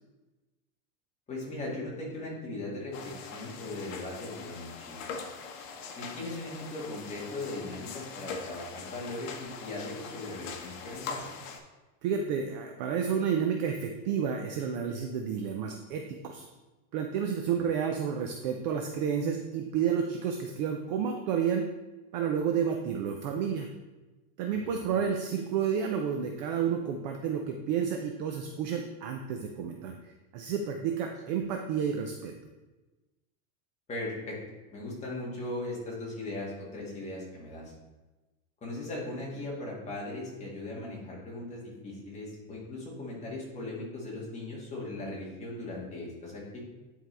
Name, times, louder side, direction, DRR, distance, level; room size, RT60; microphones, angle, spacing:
voice 1, 1.3-5.2 6.0-11.2 24.5-24.7 33.9-34.4 34.7-37.7 38.6-46.6, left 2 dB, 15° left, -5 dB, 1.8 m, -38 dB
sound 1, 2.9-11.6, left 5 dB, 60° left, 1.1 m, -42 dB
voice 2, 12.0-16.5 16.9-21.6 22.1-23.7 24.4-32.3, right 7 dB, 35° right, 3 dB, 0.4 m, -30 dB
9.4 x 4.6 x 3.3 m, 1.1 s
supercardioid pair, 155°, 43 cm